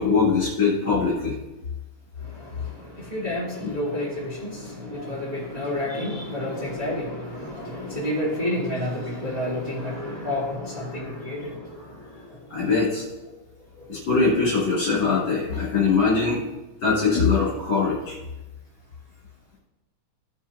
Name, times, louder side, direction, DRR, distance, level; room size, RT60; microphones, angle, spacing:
voice 1, 0.0-1.4 3.6-3.7 12.5-13.0 13.9-16.4 16.8-18.2, left 4 dB, 40° left, -6 dB, 3.0 m, -22 dB
voice 2, 2.3-12.2, left 1 dB, 10° right, -7 dB, 3.3 m, -30 dB
16.5 x 7.3 x 2.8 m, 1.1 s
omnidirectional pair, 3.6 m